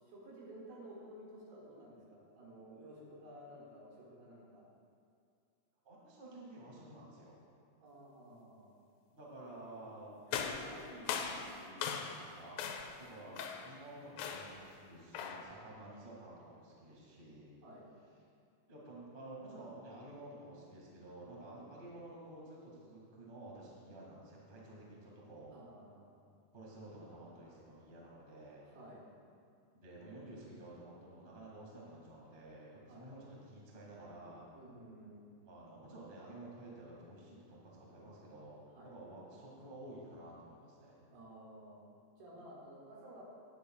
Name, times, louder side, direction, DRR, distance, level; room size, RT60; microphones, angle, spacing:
voice 1, 0.0-4.7 7.8-8.7 17.6-17.8 25.5-26.3 28.6-29.0 32.9-33.1 34.5-35.3 38.7-38.9 41.1-41.8 42.2-43.2, right 1 dB, 75° right, -5 dB, 3.7 m, -54 dB
voice 2, 5.8-7.4 9.1-10.1 10.5-17.5 18.7-25.5 26.5-28.6 29.7-34.4 35.4-41.0 42.3-42.5, right 1 dB, 30° right, -4 dB, 0.8 m, -52 dB
sound 1, 10.3-12.3 12.6-13.0 13.4-13.8 14.2-14.6 15.1-15.5, left 7 dB, 80° left, 2.2 m, -39 dB
18.0 x 8.4 x 2.3 m, 2.4 s
omnidirectional pair, 4.5 m